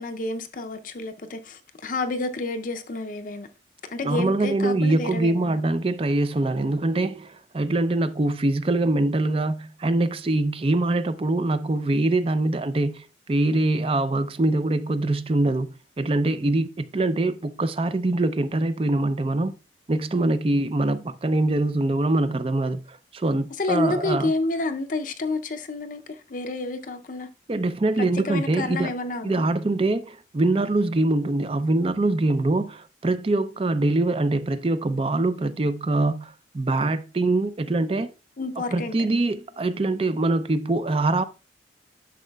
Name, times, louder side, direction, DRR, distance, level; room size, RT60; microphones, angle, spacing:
voice 1, 0.0-3.5 3.9-5.6 16.4-16.6 23.6-27.3 28.2-29.5 38.4-39.0, left 2 dB, 45° left, 0.5 m, -29 dB
voice 2, 4.0-15.7 16.0-19.5 19.9-24.3 27.5-28.9 29.2-38.1 38.7-41.2, right 2 dB, 30° right, 0.4 m, -23 dB
10.0 x 6.3 x 2.3 m
head